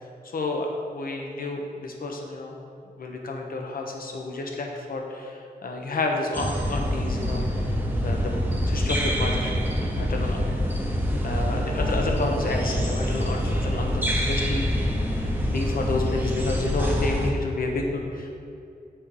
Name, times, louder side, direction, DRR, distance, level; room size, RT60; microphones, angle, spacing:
voice 1, 0.3-2.6 3.0-7.5 8.0-10.4 11.2-14.7 15.1-18.4, left 2 dB, 65° left, 1 dB, 1.0 m, -30 dB
sound 1, 6.3-17.3, equal, 10° right, 0.9 m, -26 dB
6.4 x 5.3 x 4.8 m, 2.6 s
wide cardioid pair, 155°, 16 cm